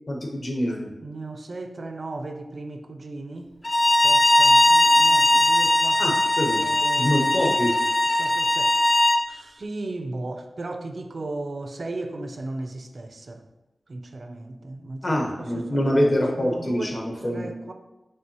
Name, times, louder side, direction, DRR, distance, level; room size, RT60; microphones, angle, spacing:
voice 1, 0.1-0.9 6.0-6.6 7.0-7.7 15.0-17.5, equal, 50° left, 0 dB, 0.9 m, -25 dB
voice 2, 1.0-6.0 6.6-7.1 8.2-8.8 9.3-13.5 13.9-15.9 16.3-17.0 17.2-17.7, right 2 dB, 55° right, 6 dB, 0.4 m, -36 dB
Bowed string instrument, 3.6-9.2, left 1 dB, 35° left, 0.3 m, -19 dB
5.4 x 3.2 x 2.8 m, 1.0 s
wide cardioid pair, 95°, 0 cm